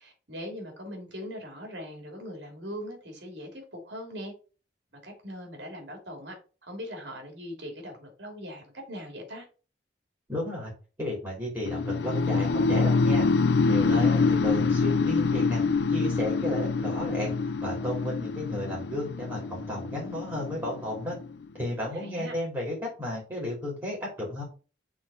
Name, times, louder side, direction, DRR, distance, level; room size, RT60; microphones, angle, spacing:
voice 1, 0.0-4.3 5.0-6.4 6.6-9.4 13.6-14.2 21.9-22.4, equal, 70° right, 3 dB, 2.8 m, -40 dB
voice 2, 10.3-10.7 11.0-15.6 15.9-17.3 17.6-21.2 21.6-24.4, left 1 dB, 15° right, -4 dB, 2.9 m, -33 dB
sound 1, 11.7-21.6, left 4 dB, 70° left, 0.4 m, -26 dB
6.2 x 3.7 x 5.5 m, 0.35 s
head